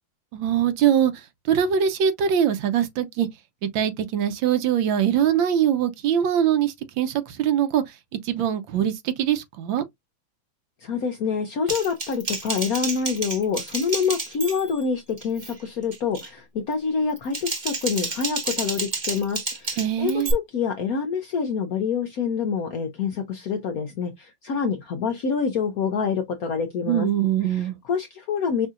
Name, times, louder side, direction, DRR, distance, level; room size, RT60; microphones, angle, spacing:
voice 1, 0.3-3.3 3.6-8.0 8.2-9.8 19.8-20.3 26.9-27.8, right 9 dB, 75° right, 1.4 m, -22 dB
voice 2, 10.8-27.1 27.5-28.7, left 6 dB, 70° left, 0.9 m, -26 dB
Typing, 11.7-14.8 15.2-15.5 15.9-16.3 17.1-20.3, right 3 dB, 30° right, 0.9 m, -30 dB
5.6 x 2.7 x 2.4 m
omnidirectional pair, 2.2 m